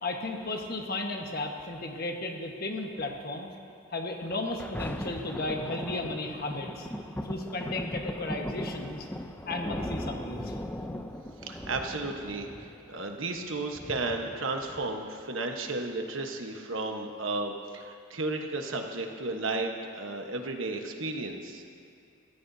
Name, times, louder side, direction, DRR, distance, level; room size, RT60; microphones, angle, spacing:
voice 1, 0.0-3.5 3.9-6.9 7.2-9.0 9.4-10.5, left 2 dB, 45° left, 1 dB, 1.4 m, -34 dB
Thunder, 4.3-15.3 15.9-16.0, left 1 dB, 10° left, 0.5 m, -38 dB
voice 2, 11.4-21.6, right 2 dB, 65° right, 3 dB, 1.2 m, -33 dB
24.0 x 14.5 x 2.8 m, 2.5 s
head